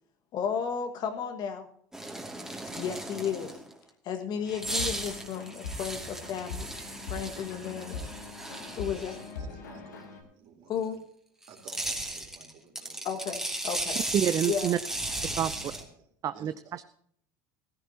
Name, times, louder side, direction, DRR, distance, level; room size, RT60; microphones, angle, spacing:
voice 1, 0.3-1.7 2.7-3.6 4.0-6.7 7.1-8.0 8.8-9.2 10.7-11.0 13.0-14.0 14.5-14.8, left 7 dB, 50° left, 6 dB, 1.8 m, -33 dB
sound 1, 1.9-3.7 4.5-9.3 11.4-15.8, right 1 dB, 5° right, 2.6 m, -36 dB
sound 2, 4.4-10.2, left 4 dB, 85° left, 2.7 m, -42 dB
voice 2, 9.3-10.9 11.4-13.1 15.3-15.9 16.3-16.8, right 4 dB, 55° right, 1 dB, 3.8 m, -53 dB
voice 3, 14.1-14.8 15.4-15.6 16.2-16.8, right 10 dB, 40° right, 13 dB, 0.6 m, -28 dB
16.0 x 15.0 x 2.9 m, 0.64 s
hypercardioid pair, 80°, 9 cm